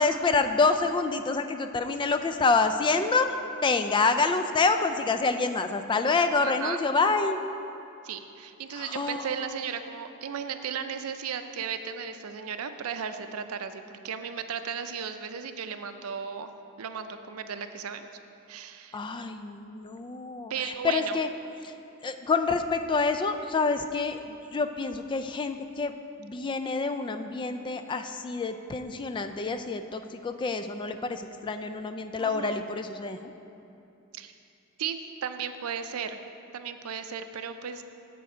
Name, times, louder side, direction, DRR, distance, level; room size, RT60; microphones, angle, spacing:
voice 1, 0.0-3.3 3.6-7.4 8.7-9.5 18.9-21.3 21.6-21.7 22.0-25.9 26.2-33.3, left 4 dB, 20° left, 8 dB, 0.3 m, -27 dB
voice 2, 6.4-6.8 8.0-16.5 16.8-18.1 18.5-19.0 20.5-21.2 32.2-32.7 34.1-34.3 34.8-36.2 36.5-37.8, right 7 dB, 90° right, 9 dB, 0.5 m, -35 dB
7.6 x 6.8 x 4.9 m, 2.8 s
head